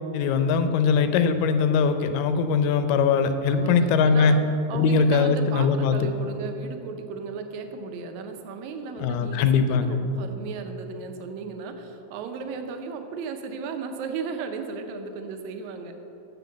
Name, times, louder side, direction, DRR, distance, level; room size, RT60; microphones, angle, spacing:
voice 1, 0.1-4.4 4.7-6.1 9.0-10.0, left 5 dB, 90° left, 9 dB, 2.3 m, -21 dB
voice 2, 3.4-4.4 4.7-16.0, right 5 dB, 75° right, 6 dB, 1.8 m, -35 dB
7.9 x 7.3 x 7.1 m, 3.0 s
omnidirectional pair, 3.8 m